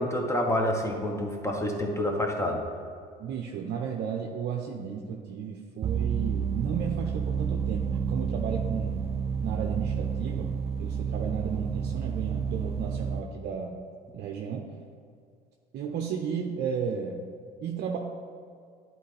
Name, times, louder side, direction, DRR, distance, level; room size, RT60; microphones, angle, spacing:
voice 1, 0.0-2.6, left 1 dB, 15° left, 2 dB, 1.3 m, -28 dB
voice 2, 3.2-9.1 9.4-13.8 14.1-14.7 15.7-17.2 17.6-18.0, right 7 dB, 55° right, 2 dB, 0.7 m, -33 dB
sound 1, 5.8-13.2, right 6 dB, 30° right, 0.3 m, -30 dB
10.5 x 4.5 x 3.3 m, 2.3 s
hypercardioid pair, 70°, 21 cm